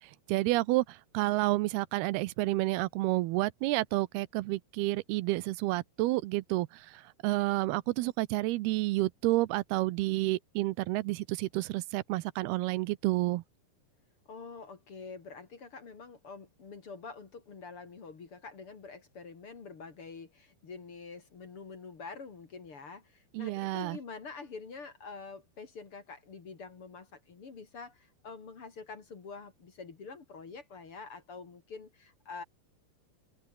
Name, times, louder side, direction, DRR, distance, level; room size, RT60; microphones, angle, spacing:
voice 1, 0.3-13.4 23.3-24.0, right 19 dB, 85° right, 2.7 m, -30 dB
voice 2, 14.3-32.4, left 4 dB, 40° left, 2.9 m, -46 dB
omnidirectional pair, 4.5 m